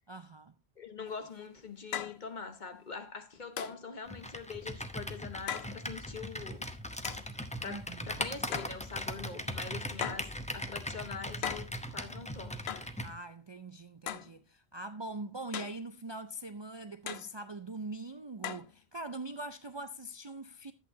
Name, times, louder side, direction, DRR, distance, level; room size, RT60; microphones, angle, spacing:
voice 1, 0.1-0.5 7.7-8.1 13.0-20.7, right 2 dB, 35° right, 0.4 m, -42 dB
voice 2, 0.8-6.7 7.6-12.7, left 5 dB, 50° left, 1.2 m, -44 dB
sound 1, 1.1-1.2 1.9-2.2 3.6-3.9 5.5-5.8 7.0-7.3 8.5-8.8 10.0-10.3 11.4-11.7 12.7-12.9 14.1-14.3 15.5-15.8 17.1-17.3 18.4-18.7, left 9 dB, 80° left, 1.0 m, -38 dB
Computer keyboard, 4.1-13.1, equal, 10° left, 0.7 m, -39 dB
11.5 x 8.4 x 2.7 m
omnidirectional pair, 1.1 m